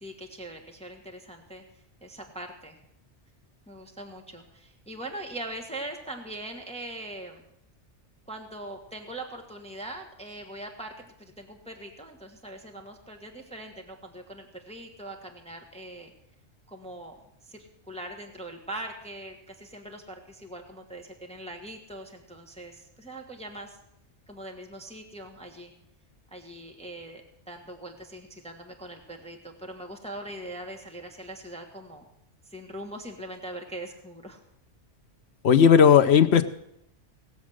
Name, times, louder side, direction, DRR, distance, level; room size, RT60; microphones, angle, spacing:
voice 1, 0.0-1.6 2.0-2.8 3.7-7.4 8.3-16.1 16.7-17.2 17.4-23.8 24.3-25.7 26.3-32.0 32.5-34.4, right 1 dB, 5° left, 2 dB, 1.3 m, -41 dB
voice 2, 35.4-36.4, left 7 dB, 70° left, 10 dB, 1.0 m, -16 dB
18.5 x 7.2 x 6.4 m, 0.79 s
omnidirectional pair, 1.2 m